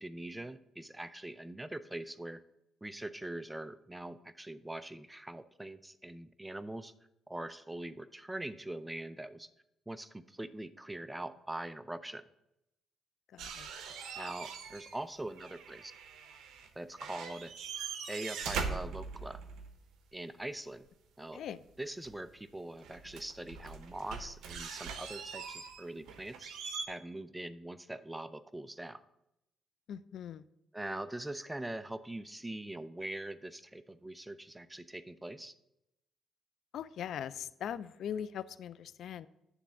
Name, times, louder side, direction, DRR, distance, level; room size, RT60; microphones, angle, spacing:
voice 1, 0.0-2.4 2.8-6.9 7.3-9.5 9.9-12.2 14.2-15.9 16.8-17.5 18.1-19.4 20.1-20.9 21.2-21.4 21.8-26.5 26.9-29.0 30.7-35.5, right 1 dB, 10° right, 13 dB, 0.5 m, -42 dB
voice 2, 13.3-13.7 21.3-21.6 29.9-30.4 36.7-39.3, left 9 dB, 70° left, 15 dB, 0.3 m, -40 dB
sound 1, 13.4-15.0 15.3-16.7 17.0-19.7 22.0-22.1 22.8-26.9, right 5 dB, 80° right, 0.9 m, -42 dB
9.8 x 3.4 x 7.0 m, 0.85 s
cardioid pair, 90°, 0 cm